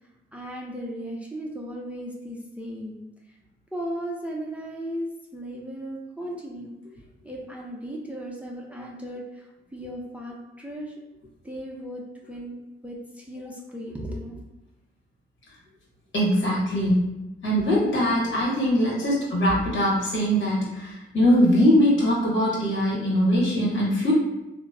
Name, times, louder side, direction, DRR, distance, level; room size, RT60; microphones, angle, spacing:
voice 1, 0.3-3.0 3.7-6.7 7.2-10.9 11.4-12.6 12.8-14.4, equal, 5° right, -2 dB, 0.5 m, -36 dB
voice 2, 16.1-17.1 17.4-24.1, equal, 65° left, -5 dB, 1.2 m, -22 dB
2.9 x 2.1 x 2.4 m, 0.97 s
cardioid pair, 65°, 21 cm